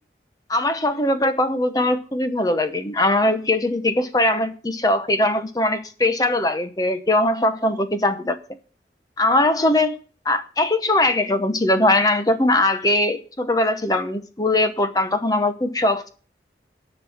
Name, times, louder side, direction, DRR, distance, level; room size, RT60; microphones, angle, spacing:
voice 1, 0.5-8.4 9.2-10.0 10.2-16.1, left 1 dB, 20° left, 0.8 m, -20 dB
10.5 x 6.1 x 7.1 m
head